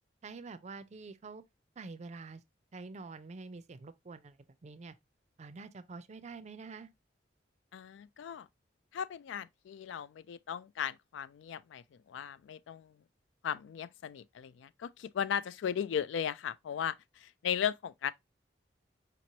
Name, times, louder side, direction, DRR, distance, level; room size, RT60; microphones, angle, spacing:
voice 1, 0.2-1.4 1.8-2.4 2.7-4.9 5.4-6.9, right 4 dB, 40° right, 0.4 m, -47 dB
voice 2, 7.7-8.5 8.9-12.9 13.4-17.0 17.2-18.1, left 8 dB, 85° left, 0.3 m, -36 dB
5.1 x 3.0 x 2.7 m
head